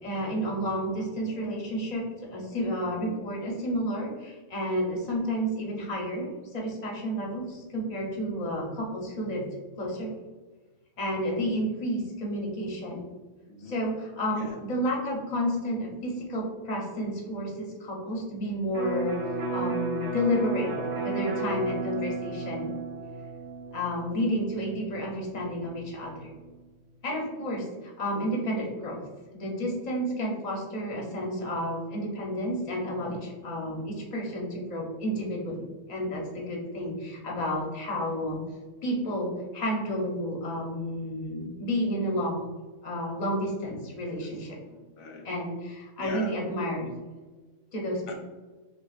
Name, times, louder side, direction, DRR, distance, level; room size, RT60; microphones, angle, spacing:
voice 1, 0.0-9.5 9.8-10.1 11.0-13.0 13.6-20.7 21.0-22.7 23.7-26.3 27.0-29.0 29.3-38.4 38.8-42.4 42.8-44.6 45.2-46.9 47.7-48.1, equal, 35° left, -2 dB, 0.9 m, -31 dB
Electric guitar, 18.7-26.4, right 3 dB, 70° right, 1.2 m, -34 dB
voice 2, 44.6-45.3 46.0-46.3 46.8-46.9 48.1-48.2, left 3 dB, 90° left, 2 dB, 1.1 m, -42 dB
6.0 x 2.4 x 2.4 m, 1.3 s
omnidirectional pair, 1.4 m